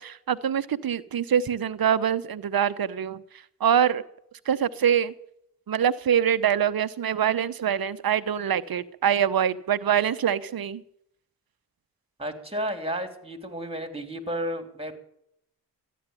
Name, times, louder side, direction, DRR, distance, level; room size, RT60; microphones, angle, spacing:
voice 1, 0.0-3.2 3.6-4.0 4.5-5.1 5.7-10.8, right 9 dB, 60° right, 14 dB, 0.9 m, -24 dB
voice 2, 12.2-14.9, equal, 15° right, 6 dB, 3.3 m, -32 dB
14.0 x 10.5 x 9.1 m, 0.73 s
supercardioid pair, 45°, 40 cm